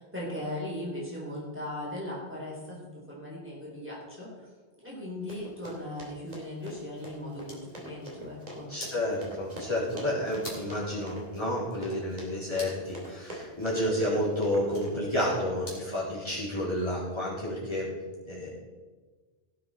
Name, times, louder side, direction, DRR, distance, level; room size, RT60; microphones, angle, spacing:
voice 1, 0.0-4.5 4.8-8.7, left 1 dB, 10° right, -6 dB, 3.7 m, -38 dB
Run, 5.3-15.4, right 1 dB, 40° right, 2.9 m, -44 dB
sound 1, 7.2-16.0, left 1 dB, 70° left, 3.7 m, -50 dB
voice 2, 8.7-17.9 18.2-18.5, left 1 dB, 25° left, -8 dB, 3.9 m, -30 dB
17.5 x 7.6 x 4.2 m, 1.4 s
omnidirectional pair, 1.0 m